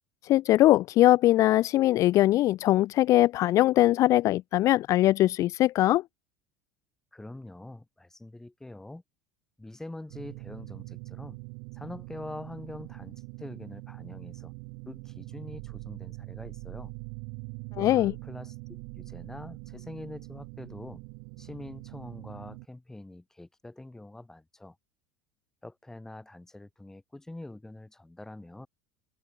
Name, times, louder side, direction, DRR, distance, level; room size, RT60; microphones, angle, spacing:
voice 1, 0.2-6.0 17.8-18.1, left 15 dB, 40° left, 0.4 m, -21 dB
voice 2, 7.1-9.0 9.6-11.4 11.7-14.5 14.9-16.9 17.8-21.0 21.4-24.8 25.6-28.7, left 2 dB, 5° left, 3.0 m, -44 dB
sound 1, 10.1-22.6, right 40 dB or more, 65° right, 0.8 m, -43 dB
supercardioid pair, 140°, 8 cm